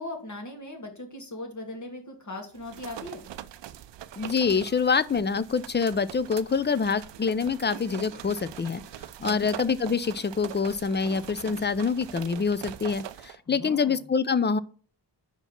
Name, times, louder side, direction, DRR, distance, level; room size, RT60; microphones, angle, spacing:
voice 1, 0.0-3.2 9.2-9.5 13.5-14.0, left 1 dB, 40° left, 3 dB, 2.1 m, -39 dB
sound 1, 2.6-13.4, right 11 dB, 75° right, 0.5 m, -42 dB
voice 2, 4.2-8.8 9.2-14.6, left 5 dB, 25° left, 16 dB, 0.5 m, -26 dB
5.5 x 4.5 x 5.8 m, 0.41 s
cardioid pair, 65°, 43 cm